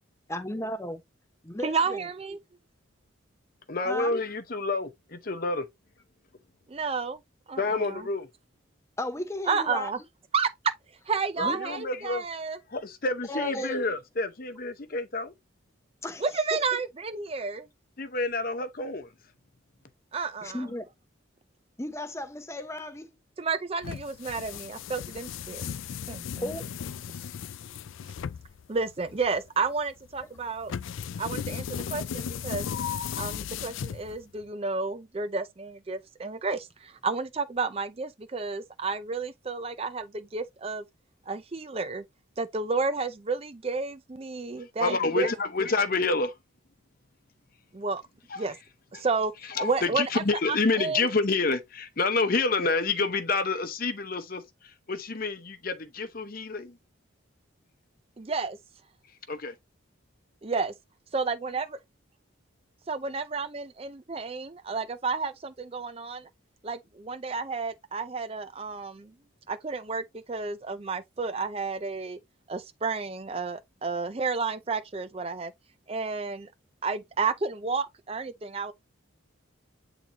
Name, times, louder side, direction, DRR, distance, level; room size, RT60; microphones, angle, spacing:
voice 1, 0.3-1.0 1.5-2.1 3.8-4.1 9.0-9.9 11.4-11.6 13.3-13.8 16.0-16.2 16.5-16.6 20.4-20.9 21.8-23.1 26.4-26.6, left 1 dB, 15° left, 0.8 m, -34 dB
voice 2, 1.6-2.4 6.7-7.2 7.5-8.0 9.5-10.0 10.3-10.5 11.1-12.6 16.2-17.7 20.1-20.7 23.4-25.6 26.1-26.5 28.7-30.7 31.2-32.7 33.2-40.8 41.3-42.0 42.4-45.3 47.7-48.0 48.4-48.5 48.9-51.0 58.2-58.6 60.4-60.7 61.1-61.8 62.9-66.3 66.6-69.1 69.5-72.2 72.5-75.5 75.9-76.5 76.8-78.7, right 4 dB, 30° right, 0.5 m, -31 dB
voice 3, 3.7-5.6 7.6-8.3 11.4-12.2 12.7-15.3 18.0-19.1 44.8-46.3 48.3-48.4 48.9-49.1 49.5-56.8 59.3-59.5, left 3 dB, 45° left, 0.8 m, -28 dB
sound 1, 23.8-34.4, left 8 dB, 70° left, 0.4 m, -36 dB
8.8 x 3.8 x 2.9 m
head